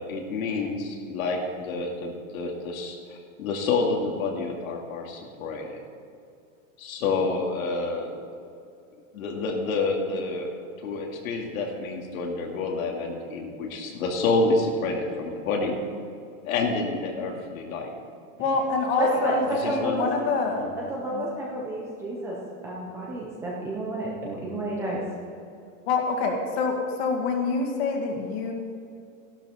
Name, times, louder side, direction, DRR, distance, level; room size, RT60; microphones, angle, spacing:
voice 1, 0.0-5.8 6.8-8.1 9.1-10.5 10.8-15.7 16.4-17.9 19.5-19.9 20.6-20.8, left 3 dB, 90° left, 0 dB, 2.5 m, -28 dB
voice 2, 18.4-20.6 21.1-21.2 25.9-28.5, left 4 dB, 50° left, 2 dB, 2.1 m, -26 dB
voice 3, 19.0-20.1 20.9-22.4 22.6-25.0, right 1 dB, 5° right, -4 dB, 0.4 m, -30 dB
13.5 x 12.0 x 4.3 m, 2.5 s
supercardioid pair, 175°, 40 cm